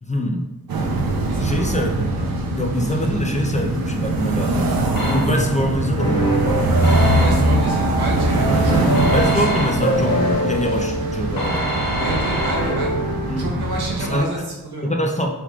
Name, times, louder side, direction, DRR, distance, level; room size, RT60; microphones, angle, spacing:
voice 1, 0.0-0.5 1.4-4.7 5.0-6.3 9.1-11.7 13.3-13.5 14.0-14.3 14.8-15.3, equal, 20° left, 1 dB, 0.4 m, -24 dB
sound 1, 0.7-14.2, right 2 dB, 65° right, 0.6 m, -22 dB
voice 2, 1.3-1.7 7.2-9.6 12.0-13.0 13.4-14.9, right 1 dB, 85° right, -3 dB, 1.1 m, -30 dB
sound 2, 5.0-5.6 6.8-7.7 8.9-10.1 11.4-13.0, equal, 60° left, 1.0 m, -26 dB
sound 3, 6.0-13.6, equal, 80° left, 1.2 m, -25 dB
4.6 x 3.4 x 2.3 m, 1.1 s
wide cardioid pair, 105°, 38 cm